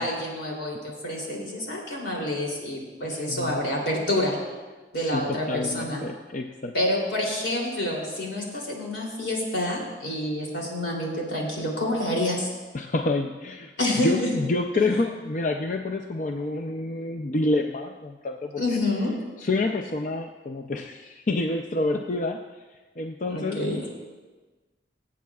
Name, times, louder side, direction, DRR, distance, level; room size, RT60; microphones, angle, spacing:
voice 1, 0.0-4.4 4.9-6.0 6.7-12.5 13.8-14.3 18.5-19.2 23.3-23.8, left 1 dB, 80° left, -2 dB, 3.1 m, -28 dB
voice 2, 3.1-3.6 5.0-6.7 12.7-13.7 14.0-18.6 19.4-22.4 23.0-23.6, left 2 dB, 45° left, 3 dB, 0.4 m, -28 dB
23.0 x 8.4 x 2.4 m, 1.3 s
head